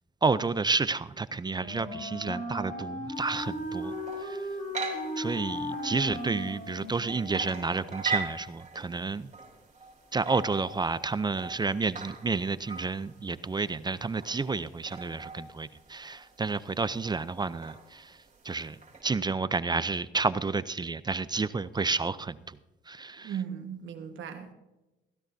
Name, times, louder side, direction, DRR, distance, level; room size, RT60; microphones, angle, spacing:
voice 1, 0.2-3.9 4.2-4.5 5.2-9.3 10.1-18.2 18.4-22.6 22.9-23.3, right 4 dB, 20° right, 15 dB, 0.5 m, -30 dB
Wind instrument woodwind instrument, 1.5-7.4, equal, 45° left, 4.8 m, -36 dB
sound 1, 3.2-19.0, right 4 dB, 35° right, 3.5 m, -41 dB
voice 2, 23.2-24.5, right 8 dB, 75° right, 5 dB, 1.4 m, -37 dB
16.5 x 15.5 x 2.7 m, 1.0 s
cardioid pair, 90°, 20 cm